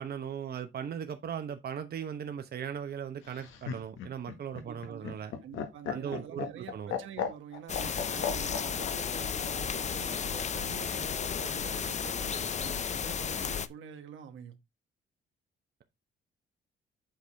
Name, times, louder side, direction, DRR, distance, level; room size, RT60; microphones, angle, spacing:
voice 1, 0.0-5.3 5.9-6.9, right 8 dB, 50° right, 1.0 m, -38 dB
Laughter, 3.2-8.9 10.2-10.9, left 7 dB, 85° left, 1.6 m, -36 dB
voice 2, 4.6-5.1 5.4-14.6, right 8 dB, 80° right, 1.3 m, -47 dB
sound 1, 7.7-13.7, left 7 dB, 35° left, 0.6 m, -33 dB
8.0 x 4.9 x 3.5 m
cardioid pair, 90°, 20 cm